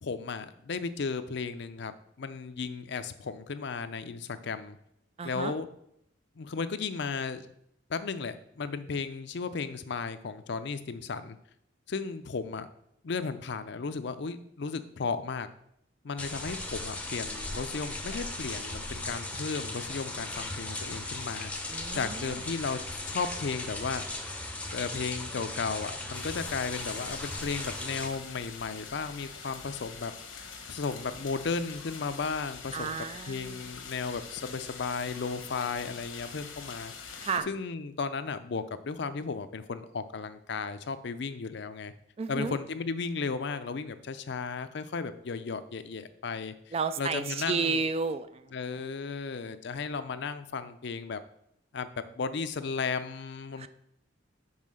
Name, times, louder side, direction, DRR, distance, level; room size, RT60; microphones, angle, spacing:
voice 1, 0.0-4.8 5.2-5.7 6.4-7.4 7.9-11.4 11.9-12.7 13.0-15.5 16.0-22.8 23.1-24.0 24.7-41.9 42.3-47.8 48.5-51.2 51.7-51.9 52.2-53.7, left 4 dB, 60° left, 11 dB, 0.5 m, -35 dB
voice 2, 5.2-5.5 21.7-22.2 32.7-33.7 37.2-37.5 42.2-42.6 46.7-48.5 53.6-53.7, right 5 dB, 30° right, 12 dB, 0.3 m, -32 dB
sound 1, 16.2-28.1, left 2 dB, 5° left, 0.6 m, -37 dB
sound 2, 26.1-37.4, left 5 dB, 85° left, 1.1 m, -44 dB
5.5 x 4.9 x 6.3 m, 0.75 s
head